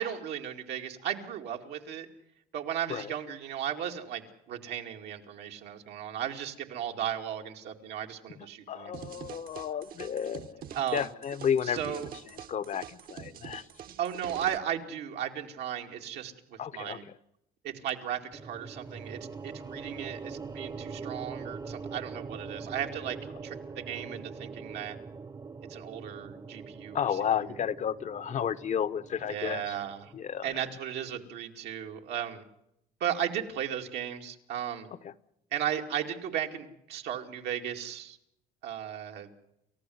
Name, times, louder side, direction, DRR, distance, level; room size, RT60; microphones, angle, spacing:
voice 1, 0.0-2.1 2.5-8.9 10.7-11.1 11.6-12.1 14.0-17.0 17.6-23.2 23.4-25.0 25.7-27.0 29.3-30.1 30.4-32.5 33.0-34.9 35.5-38.2 38.6-39.3, right 10 dB, 80° right, 3 dB, 2.5 m, -35 dB
voice 2, 8.4-12.0 12.5-13.7 16.6-17.2 26.9-29.7 30.1-30.6 35.0-35.1, left 8 dB, 45° left, 14 dB, 0.9 m, -32 dB
sound 1, 8.9-14.6, right 9 dB, 60° right, 1.4 m, -45 dB
sound 2, 18.3-30.6, right 4 dB, 25° right, 0.9 m, -43 dB
29.0 x 14.5 x 7.9 m, 0.81 s
cardioid pair, 110°, 17 cm